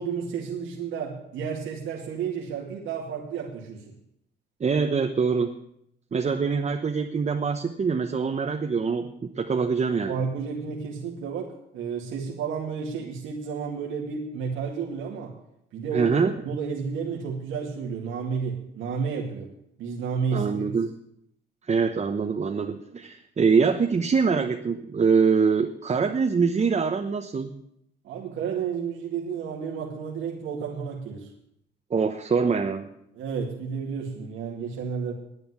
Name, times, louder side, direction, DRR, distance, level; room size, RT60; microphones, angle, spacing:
voice 1, 0.0-3.9 10.0-15.4 15.7-19.5 19.8-20.7 28.0-31.3 33.1-35.1, right 6 dB, 85° right, -1 dB, 2.3 m, -31 dB
voice 2, 4.6-5.5 6.1-10.2 15.9-16.3 20.3-20.9 21.7-27.6 31.9-32.9, right 5 dB, 35° right, 4 dB, 1.0 m, -24 dB
11.0 x 9.5 x 9.7 m, 0.75 s
cardioid pair, 90°, 20 cm